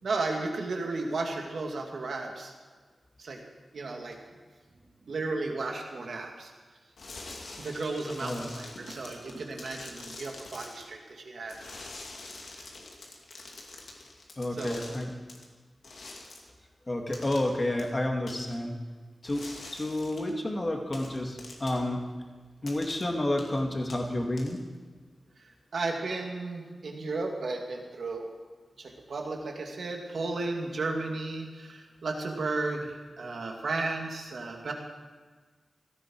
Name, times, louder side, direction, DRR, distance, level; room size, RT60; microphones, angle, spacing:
voice 1, 0.0-2.5 3.2-3.4 3.7-4.2 5.1-6.5 7.6-11.6 14.5-15.0 25.7-28.3 28.8-34.7, right 3 dB, 75° right, 1 dB, 2.4 m, -34 dB
sound 1, 7.0-10.9 11.5-15.4 15.8-16.5 17.1-17.5 17.8-17.9 18.3-18.6 19.2-20.3 20.9-21.9 22.7-23.0 23.4-23.6 23.9-24.8, left 2 dB, 85° left, 2.5 m, -45 dB
voice 2, 14.4-15.1 16.9-18.7 19.2-19.4 19.7-22.0 22.6-24.6, left 1 dB, 35° left, 2 dB, 2.3 m, -30 dB
17.0 x 14.0 x 4.7 m, 1.4 s
wide cardioid pair, 70°, 0 cm